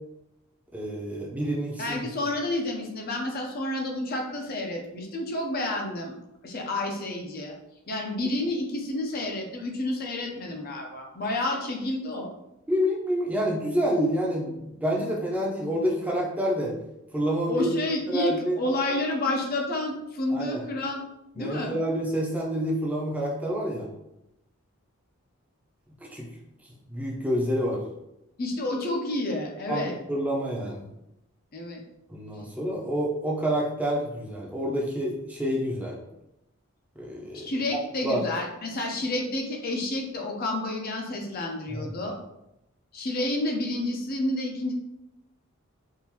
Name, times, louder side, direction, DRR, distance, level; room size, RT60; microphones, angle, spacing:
voice 1, 0.7-2.0 12.7-16.7 17.1-17.7 18.1-18.6 20.3-20.6 21.4-23.9 26.1-26.3 26.9-27.8 29.7-30.9 32.1-36.0 37.0-37.5 38.0-38.2 41.7-41.9, equal, 5° right, -3 dB, 0.6 m, -28 dB
voice 2, 1.8-6.1 6.4-7.5 7.9-12.3 17.5-21.0 21.3-21.8 28.4-30.0 31.5-31.8 37.3-42.2 42.9-44.7, left 1 dB, 45° left, 1 dB, 0.6 m, -30 dB
3.6 x 2.5 x 2.9 m, 0.86 s
head